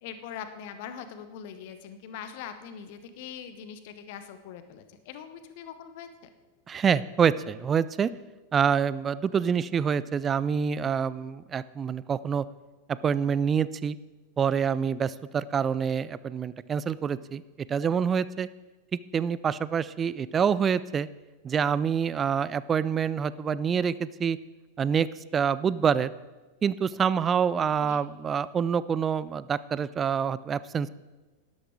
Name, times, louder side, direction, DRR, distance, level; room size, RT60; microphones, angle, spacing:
voice 1, 0.0-6.1 27.8-28.0, left 8 dB, 50° left, 10 dB, 1.1 m, -42 dB
voice 2, 6.7-8.1 8.5-12.5 12.9-14.0 14.4-17.4 17.7-18.5 19.1-21.1 21.4-24.4 24.8-26.1 26.6-30.9, right 7 dB, 20° right, 18 dB, 0.4 m, -26 dB
12.5 x 11.5 x 4.7 m, 1.2 s
figure-of-eight pair, 90°, 0 cm